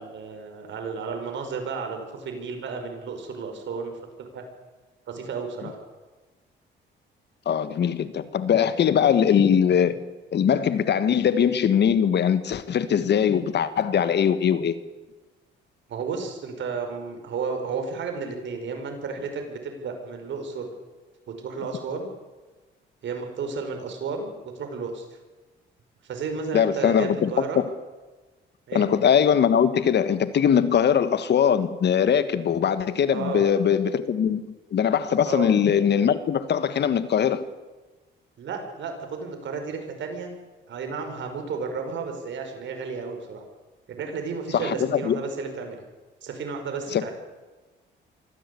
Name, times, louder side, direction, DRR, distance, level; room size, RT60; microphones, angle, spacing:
voice 1, 0.0-4.4 5.1-5.8 15.9-20.7 21.3-22.1 23.0-25.0 26.0-27.6 28.7-28.9 33.1-33.5 35.2-35.5 38.4-40.4 40.7-43.4 44.0-45.8 46.2-47.1, right 5 dB, 70° right, 5.4 m, -33 dB
voice 2, 7.4-10.0 10.3-14.7 26.5-27.3 28.7-34.4 34.7-37.4 44.5-45.2 46.9-47.1, left 8 dB, 60° left, 1.6 m, -21 dB
24.0 x 15.0 x 8.5 m
cardioid pair, 90°, 20 cm